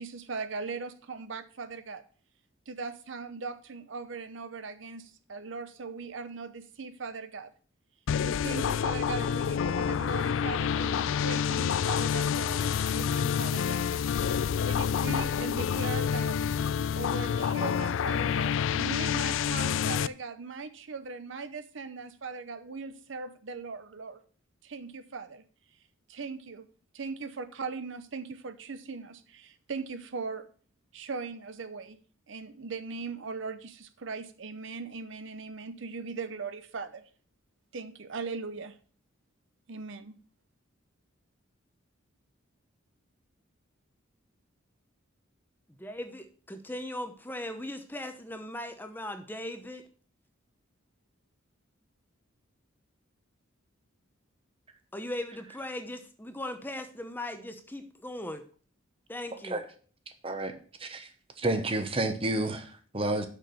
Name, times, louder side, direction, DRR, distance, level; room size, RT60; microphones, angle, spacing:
voice 1, 0.0-2.0 2.7-7.5 8.2-13.9 14.6-16.4 17.0-24.2 24.6-25.4 26.1-26.7 26.9-30.5 30.9-32.0 32.3-37.1 37.7-38.8 39.7-40.2, right 4 dB, 65° right, 11 dB, 0.7 m, -39 dB
sound 1, 8.1-20.1, left 7 dB, 65° left, 0.3 m, -28 dB
voice 2, 45.8-49.8 54.9-58.4 59.1-59.6, left 1 dB, 10° left, 7 dB, 0.8 m, -38 dB
voice 3, 60.2-61.1 61.4-63.3, right 2 dB, 25° right, 8 dB, 1.0 m, -30 dB
6.6 x 6.1 x 6.8 m, 0.43 s
head